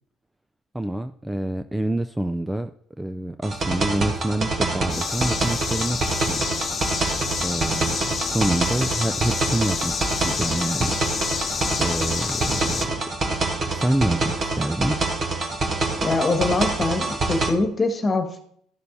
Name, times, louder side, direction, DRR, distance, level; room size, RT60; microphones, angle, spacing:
voice 1, 0.7-2.7 3.0-6.5 7.4-11.0 11.4-12.9 13.7-15.0, right 1 dB, 10° right, 10 dB, 0.4 m, -27 dB
sound 1, 3.4-17.5, right 3 dB, 35° right, 1.4 m, -26 dB
sound 2, 4.9-12.9, left 6 dB, 40° left, 0.9 m, -29 dB
voice 2, 16.0-18.5, left 3 dB, 25° left, 5 dB, 1.6 m, -23 dB
13.0 x 6.7 x 2.7 m, 0.66 s
supercardioid pair, 80°, 0 cm